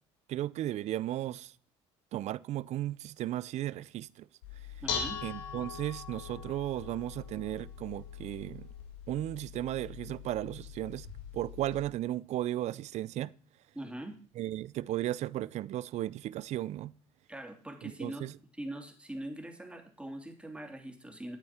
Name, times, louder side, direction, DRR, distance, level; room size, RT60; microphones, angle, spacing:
voice 1, 0.3-1.5 2.1-4.3 5.2-8.7 9.1-11.1 11.3-13.3 14.4-16.9 17.8-18.3, right 14 dB, 55° right, 0.5 m, -35 dB
Dishes pots and pans, 4.4-11.8, left 7 dB, 85° left, 2.2 m, -42 dB
voice 2, 4.8-5.2 13.7-14.2 17.3-18.3 18.6-21.4, right 1 dB, 10° right, 3.0 m, -42 dB
12.0 x 8.7 x 4.4 m
hypercardioid pair, 65°, 14 cm